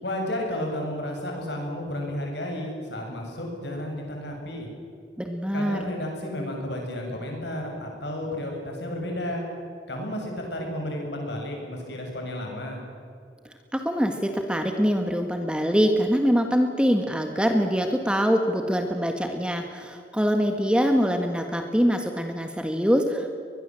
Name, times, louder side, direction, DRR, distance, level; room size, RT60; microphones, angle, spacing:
voice 1, 0.0-4.7 5.5-9.4 9.9-12.8, left 1 dB, 70° left, 1 dB, 7.2 m, -32 dB
voice 2, 5.2-5.9 13.7-23.4, equal, 5° right, 5 dB, 1.6 m, -24 dB
23.5 x 21.0 x 7.7 m, 2.3 s
head